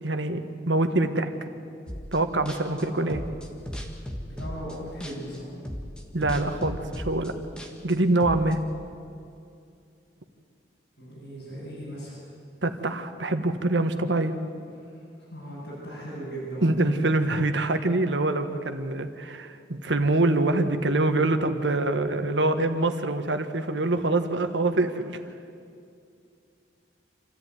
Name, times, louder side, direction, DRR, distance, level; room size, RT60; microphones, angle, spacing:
voice 1, 0.0-1.3 2.1-3.2 6.1-7.3 7.8-8.6 12.6-14.4 16.6-25.2, right 2 dB, 80° right, 8 dB, 1.5 m, -25 dB
sound 1, 1.9-2.2 2.5-5.4 5.6-8.5, equal, 5° left, 1.7 m, -36 dB
voice 2, 2.7-3.1 4.3-5.5 11.0-12.2 14.7-16.8, right 1 dB, 70° left, -8 dB, 7.9 m, -38 dB
27.0 x 14.5 x 9.5 m, 2.5 s
head